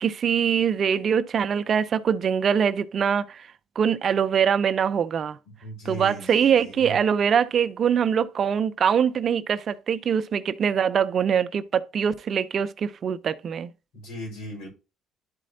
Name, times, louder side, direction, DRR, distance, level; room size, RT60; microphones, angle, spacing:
voice 1, 0.0-3.5 3.8-5.4 5.9-13.7, right 7 dB, 50° right, 0.5 m, -23 dB
voice 2, 5.6-7.1 13.9-14.7, right 1 dB, 85° left, 4.3 m, -37 dB
11.5 x 4.2 x 2.6 m
cardioid pair, 95°, 0 cm